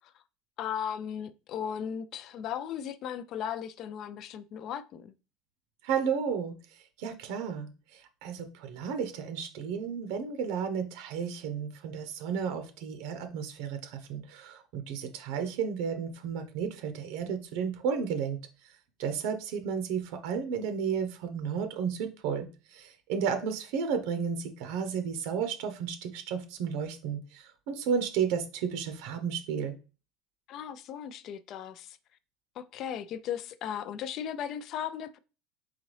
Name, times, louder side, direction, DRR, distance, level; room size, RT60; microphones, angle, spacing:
voice 1, 0.6-5.1 30.5-32.0 32.6-35.2, left 9 dB, 45° left, 0.3 m, -36 dB
voice 2, 5.8-6.6 7.0-18.4 19.0-29.7, right 7 dB, 70° right, 0.7 m, -33 dB
3.9 x 3.6 x 3.2 m
cardioid pair, 145°, 0 cm